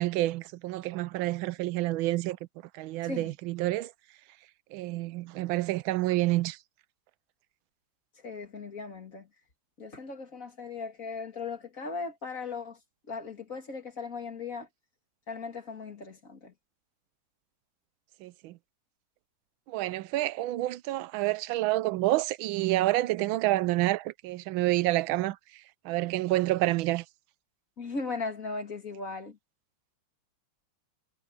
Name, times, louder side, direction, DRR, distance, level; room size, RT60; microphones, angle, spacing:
voice 1, 0.0-2.4 2.7-3.9 4.7-6.6 18.2-18.6 19.7-25.4 25.8-27.0, right 17 dB, 85° right, 1.4 m, -28 dB
voice 2, 3.0-3.3 8.2-9.3 9.8-12.8 13.1-14.7 15.3-16.5 27.8-29.4, left 4 dB, 40° left, 2.8 m, -38 dB
omnidirectional pair, 2.1 m